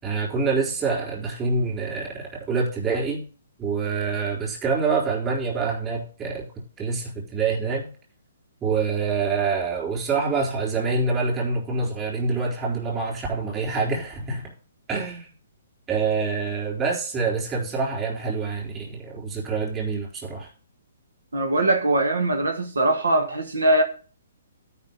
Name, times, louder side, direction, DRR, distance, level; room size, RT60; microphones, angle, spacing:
voice 1, 0.0-3.2 3.6-7.9 8.6-14.5 14.9-15.3 15.9-20.5, right 4 dB, 20° right, 3.9 m, -26 dB
voice 2, 21.3-23.8, right 2 dB, 90° right, 1.5 m, -21 dB
12.5 x 5.4 x 5.4 m
hypercardioid pair, 145°, 0 cm